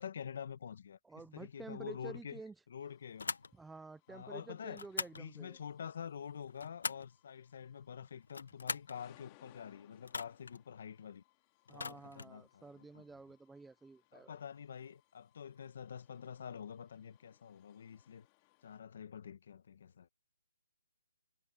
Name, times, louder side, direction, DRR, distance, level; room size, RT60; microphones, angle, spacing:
voice 1, 0.0-1.0 1.3-2.4 2.7-3.3 4.1-4.8 5.2-11.2 11.7-13.0 14.1-18.3 18.6-20.1, left 7 dB, 50° left, 1.4 m, -47 dB
voice 2, 1.0-2.6 3.5-5.6 11.7-14.4, right 3 dB, 5° right, 0.5 m, -51 dB
sound 1, 2.8-18.8, left 23 dB, 20° left, 2.7 m, -70 dB
sound 2, 3.2-3.5 4.7-5.2 6.3-7.1 8.2-9.0 10.0-10.6 11.7-12.3, left 4 dB, 80° left, 1.2 m, -41 dB
hypercardioid pair, 165°, 0 cm